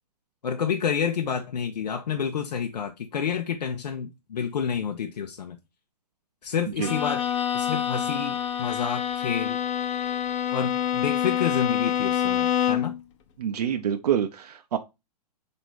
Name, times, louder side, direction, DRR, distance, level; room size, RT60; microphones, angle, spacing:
voice 1, 0.4-5.6 6.4-7.2 7.5-9.6 10.5-12.9, left 7 dB, 80° left, 0.6 m, -29 dB
Bowed string instrument, 6.8-13.0, left 9 dB, 45° left, 0.7 m, -26 dB
voice 2, 13.4-14.8, right 9 dB, 70° right, 0.6 m, -26 dB
4.1 x 2.7 x 4.6 m
hypercardioid pair, 130°, 21 cm